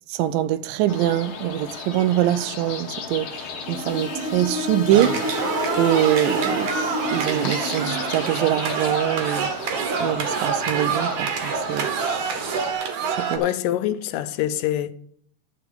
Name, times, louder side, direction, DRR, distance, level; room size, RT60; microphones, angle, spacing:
voice 1, 0.1-5.2 5.8-9.5 10.0-12.7 13.2-13.4, right 12 dB, 85° right, 2.3 m, -24 dB
sound 1, 0.9-12.7, left 5 dB, 70° left, 1.3 m, -36 dB
sound 2, 3.6-8.4, left 1 dB, 35° left, 1.7 m, -30 dB
sound 3, 4.9-13.4, right 6 dB, 65° right, 2.6 m, -26 dB
voice 2, 13.4-14.9, left 12 dB, 85° left, 2.2 m, -25 dB
11.5 x 4.6 x 7.8 m
omnidirectional pair, 3.9 m